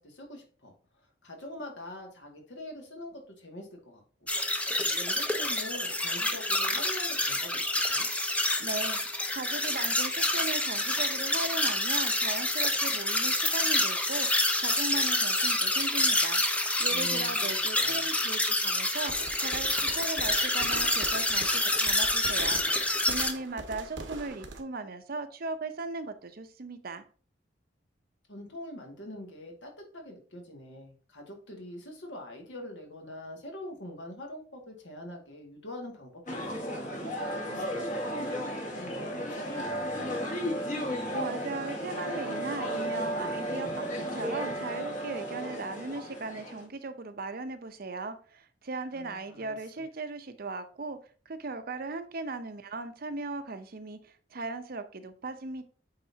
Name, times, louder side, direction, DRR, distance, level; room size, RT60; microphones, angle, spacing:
voice 1, 0.0-4.3 4.8-8.1 16.9-17.3 17.8-18.1 28.3-36.4 36.7-36.9 37.5-40.3 48.9-49.8, left 1 dB, 75° left, 1 dB, 2.0 m, -44 dB
sound 1, 4.3-23.3, left 1 dB, 5° left, 0.7 m, -28 dB
voice 2, 8.6-9.0 9.3-19.1 19.4-27.0 41.1-51.0 51.3-55.6, right 3 dB, 55° right, 10 dB, 0.7 m, -38 dB
sound 2, 19.1-24.6, right 2 dB, 90° right, 1.1 m, -43 dB
sound 3, 36.3-46.7, equal, 45° left, 1.7 m, -34 dB
8.5 x 4.0 x 2.8 m, 0.41 s
head